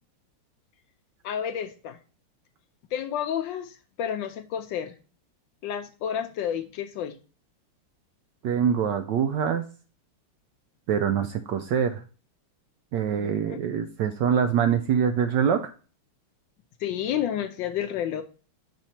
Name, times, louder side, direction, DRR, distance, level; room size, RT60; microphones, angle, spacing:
voice 1, 1.2-2.0 2.9-4.9 5.6-7.2 13.2-13.6 16.8-18.2, left 9 dB, 75° left, 9 dB, 1.1 m, -30 dB
voice 2, 8.4-9.6 10.9-12.0 12.9-15.7, right 8 dB, 75° right, 9 dB, 1.0 m, -24 dB
6.2 x 5.1 x 4.3 m, 0.37 s
omnidirectional pair, 2.4 m